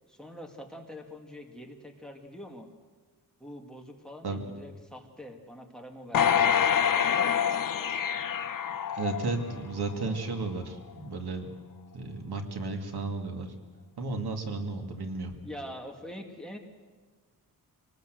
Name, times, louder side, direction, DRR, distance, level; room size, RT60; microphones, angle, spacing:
voice 1, 0.1-2.7 3.4-6.6 7.0-7.4 15.4-16.6, equal, ahead, 3 dB, 2.2 m, -44 dB
sound 1, 6.1-9.6 10.1-10.2, left 8 dB, 55° left, 0.9 m, -26 dB
voice 2, 8.9-11.5 11.9-13.5 14.0-15.3, right 3 dB, 75° right, 4 dB, 2.6 m, -33 dB
26.0 x 19.5 x 7.9 m, 1.4 s
wide cardioid pair, 160°, 39 cm